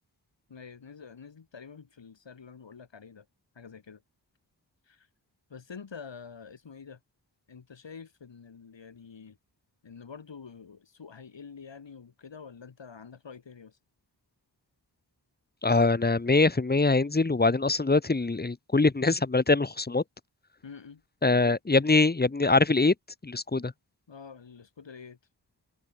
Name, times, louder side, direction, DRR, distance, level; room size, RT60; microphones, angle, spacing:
voice 1, 0.5-3.3 3.5-4.0 4.9-5.1 5.5-7.0 7.5-9.4 9.8-13.8 20.6-21.6 23.6-23.7 24.1-25.2, left 6 dB, 85° left, 6.6 m, -47 dB
voice 2, 15.6-20.0 21.2-22.9 23.2-23.7, left 3 dB, 20° left, 1.1 m, -23 dB
wide cardioid pair, 80°, 43 cm